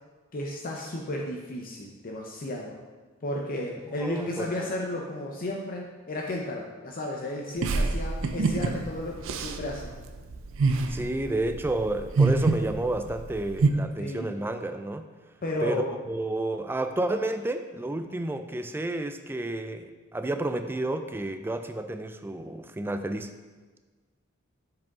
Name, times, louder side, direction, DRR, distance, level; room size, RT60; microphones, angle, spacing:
voice 1, 0.3-2.8 3.2-9.9 14.0-14.3 15.4-16.0, left 1 dB, 40° left, -1 dB, 0.6 m, -33 dB
voice 2, 4.0-4.7 10.9-15.1 15.6-23.3, right 1 dB, 10° right, 8 dB, 0.3 m, -31 dB
sound 1, 7.6-13.7, right 3 dB, 65° right, 0.5 m, -26 dB
7.5 x 4.8 x 3.6 m, 1.3 s
head